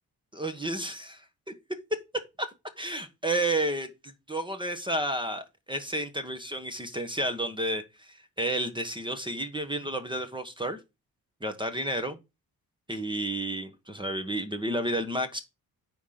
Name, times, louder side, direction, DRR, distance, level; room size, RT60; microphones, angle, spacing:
voice 1, 0.3-1.1 2.4-2.5 2.8-10.8 11.4-12.2 12.9-15.4, right 1 dB, 15° right, 1.2 m, -31 dB
9.3 x 3.9 x 5.9 m
cardioid pair, 95°, 37 cm